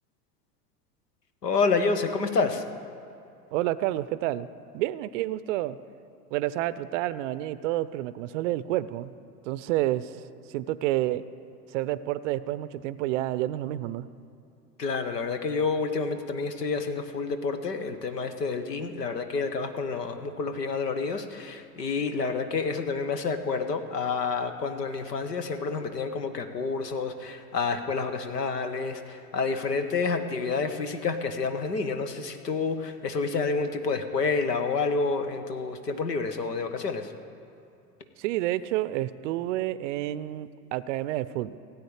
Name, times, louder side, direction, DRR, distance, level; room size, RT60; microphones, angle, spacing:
voice 1, 1.4-2.6 14.8-37.1, left 4 dB, 80° left, 9 dB, 1.1 m, -29 dB
voice 2, 3.5-4.5 4.7-5.8 6.3-9.1 9.4-10.2 10.5-11.2 11.7-14.1 38.2-41.6, right 15 dB, 50° right, 17 dB, 0.5 m, -29 dB
17.0 x 8.7 x 4.9 m, 2.6 s
figure-of-eight pair, 85°, 48 cm